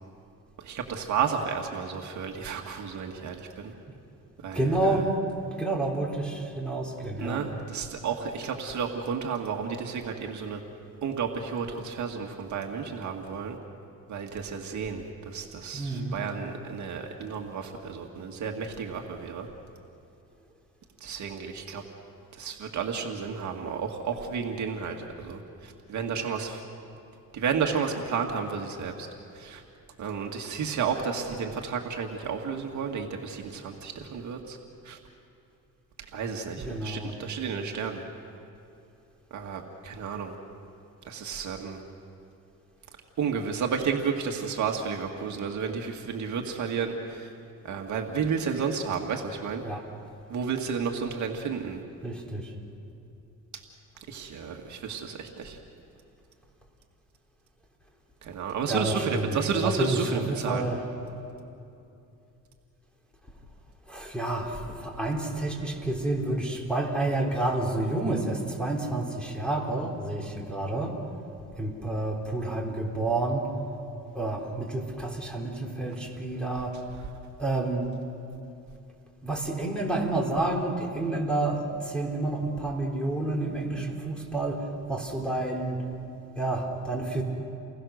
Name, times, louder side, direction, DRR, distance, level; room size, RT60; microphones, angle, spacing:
voice 1, 0.6-3.7 4.4-5.0 7.2-10.6 11.0-13.6 14.1-19.5 21.0-21.8 22.4-26.6 27.3-29.1 29.4-29.6 30.0-34.6 34.8-35.0 36.1-38.0 39.3-40.3 41.0-41.8 43.2-47.3 47.6-49.6 50.3-51.8 54.1-55.6 58.2-60.7, right 6 dB, 55° right, 2 dB, 2.1 m, -32 dB
voice 2, 4.5-5.1 5.6-7.4 15.7-16.3 36.6-37.2 49.6-49.8 52.0-52.5 58.7-60.8 63.9-71.0 71.6-73.6 74.1-76.8 77.4-78.0 79.2-85.9 86.4-87.2, right 2 dB, 5° left, 0 dB, 3.8 m, -29 dB
29.5 x 21.5 x 6.6 m, 2.8 s
cardioid pair, 125°, 35 cm